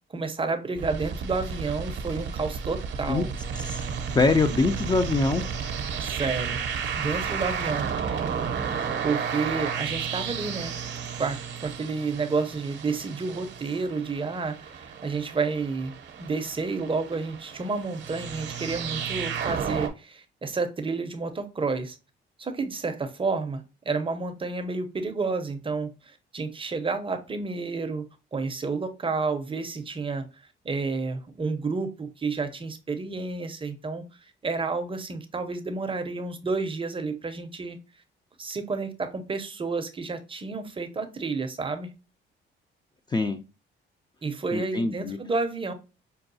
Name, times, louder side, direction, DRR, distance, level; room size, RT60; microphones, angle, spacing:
voice 1, 0.1-3.3 6.0-6.6 6.9-8.3 9.0-10.7 11.2-22.0 22.4-28.1 28.3-30.3 30.6-37.8 38.4-41.9 44.2-45.7, right 4 dB, 25° right, 0.6 m, -30 dB
sound 1, 0.8-19.9, right 6 dB, 65° right, 0.7 m, -33 dB
voice 2, 4.1-5.5 43.1-43.4 44.5-45.2, left 3 dB, 20° left, 0.4 m, -23 dB
5.3 x 2.3 x 2.6 m
cardioid pair, 90°, 20 cm